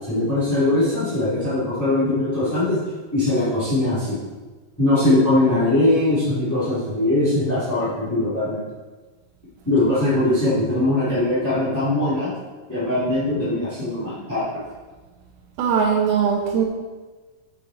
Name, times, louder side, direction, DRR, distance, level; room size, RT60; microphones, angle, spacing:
voice 1, 0.1-2.8 3.1-4.2 4.8-8.6 9.6-12.3 12.7-14.5, left 2 dB, 5° left, -12 dB, 2.0 m, -21 dB
voice 2, 15.6-16.7, right 6 dB, 90° right, -2 dB, 3.7 m, -20 dB
8.4 x 8.1 x 4.3 m, 1.3 s
omnidirectional pair, 5.7 m